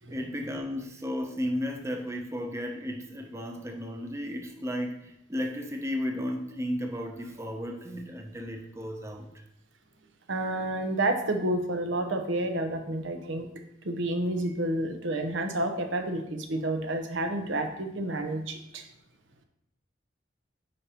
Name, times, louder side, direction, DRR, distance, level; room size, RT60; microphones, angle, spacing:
voice 1, 0.1-9.3, equal, 15° right, 3 dB, 0.6 m, -34 dB
voice 2, 10.3-13.5 13.8-18.8, right 1 dB, 90° right, 5 dB, 0.9 m, -30 dB
9.3 x 5.2 x 2.9 m, 0.79 s
head